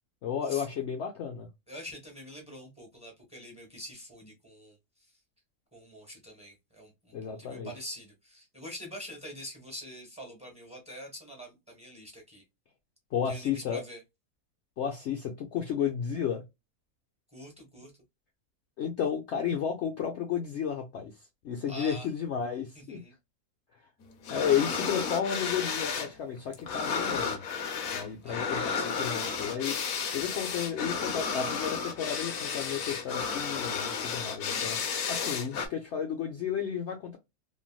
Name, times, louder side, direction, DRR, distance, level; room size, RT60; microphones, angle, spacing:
voice 1, 0.2-1.5 7.1-7.7 13.1-13.8 14.8-16.4 18.8-21.1 21.4-23.0 24.3-27.4 27.9-29.7 30.1-34.8 35.1-37.2, left 8 dB, 60° left, 0.8 m, -32 dB
voice 2, 1.7-4.8 5.7-12.4 13.2-14.0 17.3-17.9 21.7-22.1 22.7-23.1 28.2-28.9, equal, 5° right, 1.2 m, -45 dB
sound 1, 24.2-26.1 26.4-35.7, left 6 dB, 90° left, 1.3 m, -32 dB
3.2 x 2.5 x 2.3 m
omnidirectional pair, 1.5 m